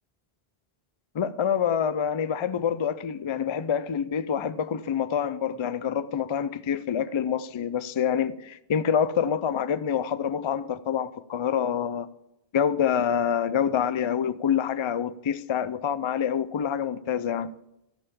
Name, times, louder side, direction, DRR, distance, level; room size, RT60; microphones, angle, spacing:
voice 1, 1.1-12.1 12.5-17.5, left 8 dB, 50° left, 0.3 m, -26 dB
13.0 x 5.6 x 7.0 m
omnidirectional pair, 1.0 m